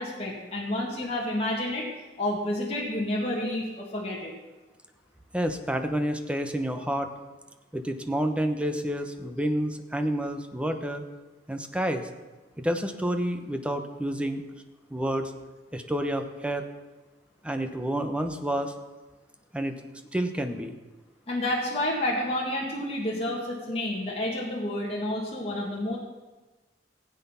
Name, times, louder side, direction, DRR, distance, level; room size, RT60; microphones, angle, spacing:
voice 1, 0.0-1.9 2.2-4.3 21.3-26.0, left 1 dB, 35° left, -3 dB, 2.0 m, -29 dB
voice 2, 5.3-7.1 7.7-11.0 11.5-12.1 12.6-14.4 14.9-15.3 15.7-16.7 17.4-18.7 19.5-19.8 20.1-20.7, equal, 5° right, 7 dB, 0.9 m, -29 dB
16.0 x 8.2 x 5.7 m, 1.2 s
head